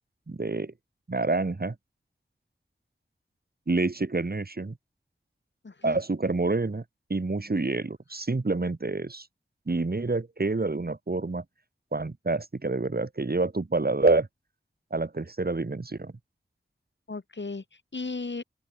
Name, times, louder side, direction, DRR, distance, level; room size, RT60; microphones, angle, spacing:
voice 1, 0.3-0.7 1.1-1.7 3.7-4.7 5.8-6.8 7.1-9.3 9.7-11.4 11.9-14.3 14.9-16.1, right 3 dB, 50° right, 4.5 m, -27 dB
voice 2, 5.6-6.0 17.1-18.4, left 3 dB, 65° left, 7.7 m, -36 dB
open air
cardioid pair, 45°, 20 cm